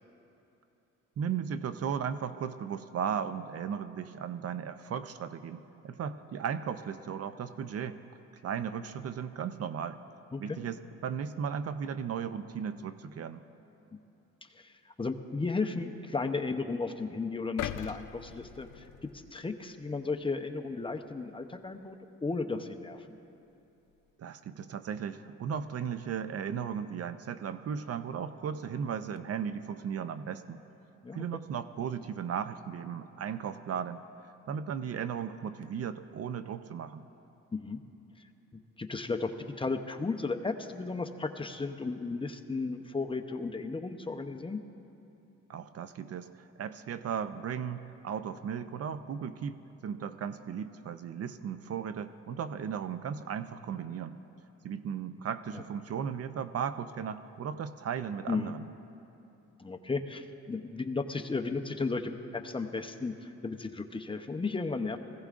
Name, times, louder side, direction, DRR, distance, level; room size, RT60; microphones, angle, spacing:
voice 1, 1.2-8.0 8.4-10.0 10.4-13.4 24.2-30.6 31.1-37.1 45.5-54.2 54.6-58.7, right 7 dB, 50° right, 11 dB, 0.6 m, -36 dB
voice 2, 14.5-18.8 19.1-23.1 31.0-31.2 37.5-37.8 38.8-44.6 58.3-58.5 59.6-65.0, left 3 dB, 15° left, 5 dB, 0.7 m, -34 dB
sound 1, 17.6-19.7 20.2-20.4, left 12 dB, 75° left, 0.5 m, -40 dB
20.5 x 16.0 x 2.5 m, 2.9 s
cardioid pair, 85°, 31 cm